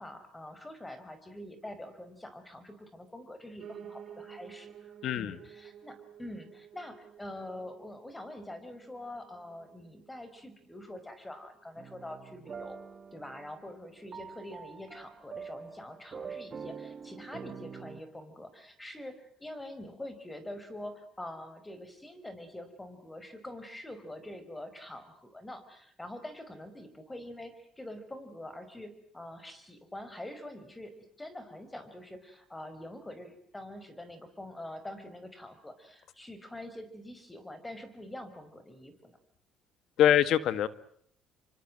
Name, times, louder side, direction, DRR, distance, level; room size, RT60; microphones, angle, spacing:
voice 1, 0.0-12.8 13.1-30.9 31.2-39.2, left 1 dB, 10° left, 11 dB, 5.5 m, -45 dB
Piano, 3.6-12.7 13.1-14.3 14.5-14.6 14.9-15.0 15.2-15.3 15.9-16.0, right 8 dB, 55° right, 3.0 m, -53 dB
voice 2, 5.0-5.4 40.0-40.7, left 11 dB, 65° left, 15 dB, 1.7 m, -24 dB
sound 1, 11.8-18.0, right 6 dB, 40° right, 1.9 m, -45 dB
27.0 x 25.0 x 7.7 m, 0.64 s
cardioid pair, 90°, 0 cm